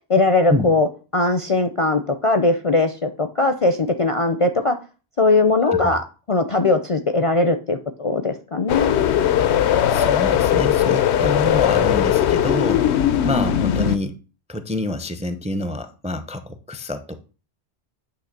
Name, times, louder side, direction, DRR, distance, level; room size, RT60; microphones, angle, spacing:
voice 1, 0.1-0.9 1.1-4.8 5.2-6.0 6.3-9.0, left 3 dB, 45° left, 0.5 m, -19 dB
voice 2, 5.6-5.9 9.9-12.9 13.2-14.2 14.5-17.2, left 1 dB, 10° right, 0.4 m, -27 dB
sound 1, 8.7-14.0, left 10 dB, 90° left, 0.9 m, -19 dB
8.8 x 3.1 x 6.5 m
omnidirectional pair, 1.1 m